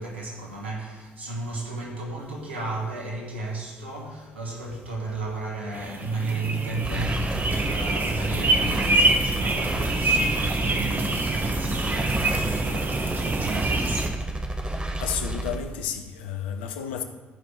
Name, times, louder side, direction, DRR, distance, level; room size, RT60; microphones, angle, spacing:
voice 1, 0.0-14.3, right 2 dB, 90° right, 1.4 m, -34 dB
sound 1, 5.7-14.1, right 2 dB, 35° right, 1.3 m, -25 dB
sound 2, 6.8-15.6, right 1 dB, 15° right, 1.3 m, -31 dB
voice 2, 14.6-17.0, left 8 dB, 80° left, 0.7 m, -32 dB
14.0 x 5.1 x 5.7 m
figure-of-eight pair, 45°, 6 cm